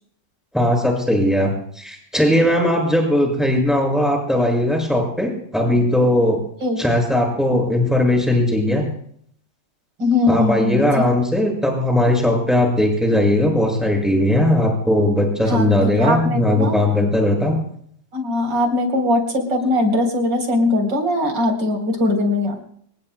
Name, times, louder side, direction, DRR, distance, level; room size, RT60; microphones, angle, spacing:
voice 1, 0.5-1.5 1.8-6.4 6.8-8.8 10.3-17.5, left 1 dB, ahead, 0 dB, 6.4 m, -18 dB
voice 2, 10.0-10.9 15.5-16.8 18.1-22.7, left 2 dB, 80° right, 4 dB, 4.7 m, -20 dB
27.5 x 20.0 x 2.3 m, 0.66 s
omnidirectional pair, 1.9 m